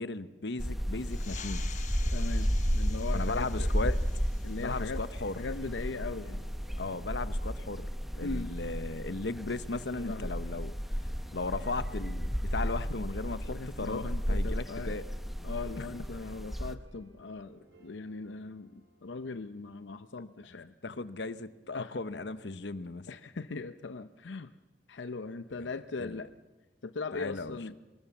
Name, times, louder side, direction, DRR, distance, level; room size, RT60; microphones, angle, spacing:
voice 1, 0.0-1.7 3.1-4.0 4.6-5.4 6.8-7.9 8.2-10.7 11.3-14.0 14.3-15.0 15.8-15.9 20.8-23.1 26.0-26.2 27.1-27.6, left 3 dB, 70° left, 13 dB, 1.0 m, -36 dB
sound 1, 0.6-16.7, equal, ahead, 1.0 m, -33 dB
sound 2, 1.0-6.1, left 9 dB, 40° left, 1.1 m, -49 dB
sound 3, 1.9-20.0, right 1 dB, 85° right, 6.9 m, -61 dB
voice 2, 2.1-4.0 4.4-5.0 5.4-6.5 8.2-8.5 9.9-10.4 12.6-13.0 13.5-15.0 15.4-20.7 21.7-22.0 23.1-24.5 24.9-26.3 26.8-27.7, left 3 dB, 85° left, 11 dB, 0.7 m, -40 dB
24.0 x 20.0 x 7.1 m, 1.2 s
head